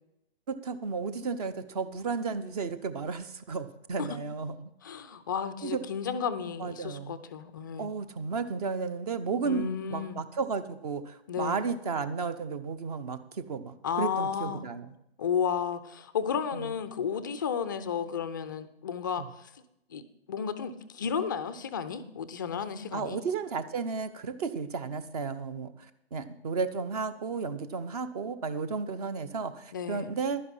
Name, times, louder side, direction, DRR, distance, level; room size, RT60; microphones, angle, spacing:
voice 1, 0.5-4.7 5.6-5.8 6.6-7.2 7.8-14.9 16.5-16.7 19.2-19.3 22.9-30.4, right 5 dB, 35° right, 0.9 m, -33 dB
voice 2, 4.8-7.9 9.4-10.2 11.3-11.7 13.8-14.6 15.2-19.5 19.9-20.0 20.3-23.2 29.7-30.1, left 7 dB, 20° left, 0.4 m, -33 dB
11.5 x 9.7 x 5.5 m
figure-of-eight pair, 130°, 33 cm